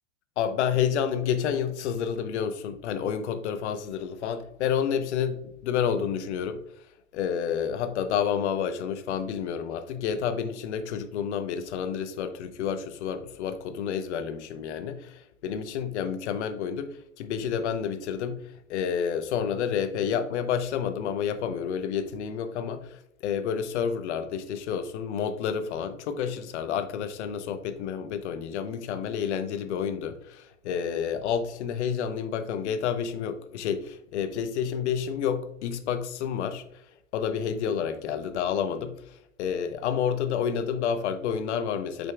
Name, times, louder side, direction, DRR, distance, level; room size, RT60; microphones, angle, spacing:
voice 1, 0.4-6.6 7.1-18.4 18.7-36.6 37.1-39.0 39.4-42.1, left 7 dB, 55° left, 0.8 m, -29 dB
7.9 x 5.2 x 2.3 m
hypercardioid pair, 125°, 40 cm